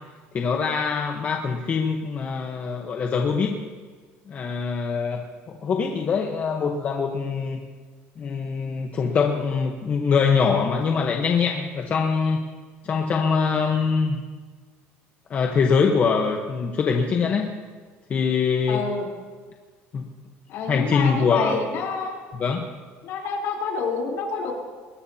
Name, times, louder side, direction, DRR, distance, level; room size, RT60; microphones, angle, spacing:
voice 1, 0.3-3.6 4.3-5.2 5.5-7.6 8.2-12.4 12.8-14.2 15.3-17.5 18.1-18.8 19.9-20.1 20.7-21.6 22.4-22.7, left 5 dB, 35° left, 2 dB, 1.1 m, -23 dB
voice 2, 18.7-19.1 20.5-22.2 23.0-24.5, left 5 dB, 60° left, -1 dB, 3.8 m, -28 dB
21.0 x 19.5 x 2.9 m, 1.5 s
cardioid pair, 145°, 5 cm